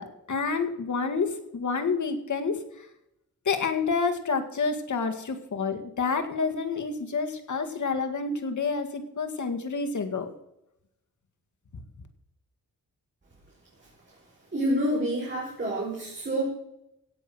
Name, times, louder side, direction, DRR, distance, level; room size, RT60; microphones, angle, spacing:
voice 1, 0.0-2.6 3.5-10.3 11.7-11.8, left 4 dB, 60° left, 6 dB, 2.0 m, -29 dB
voice 2, 14.5-16.4, right 1 dB, 35° right, -4 dB, 5.4 m, -28 dB
17.0 x 7.8 x 6.3 m, 0.83 s
wide cardioid pair, 105°, 34 cm